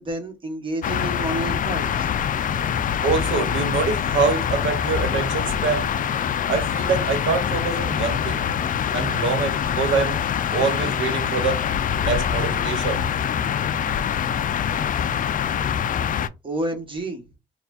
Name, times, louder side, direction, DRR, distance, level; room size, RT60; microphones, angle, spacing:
voice 1, 0.0-2.1 16.4-17.2, right 1 dB, 25° right, 1.4 m, -30 dB
sound 1, 0.8-16.3, left 8 dB, 45° left, 0.4 m, -24 dB
voice 2, 3.0-5.9 6.5-8.4 8.9-10.2 10.5-11.6 12.0-13.5 13.8-13.9, right 5 dB, 75° right, 1.2 m, -25 dB
4.3 x 2.4 x 2.6 m
cardioid pair, 90°, 20 cm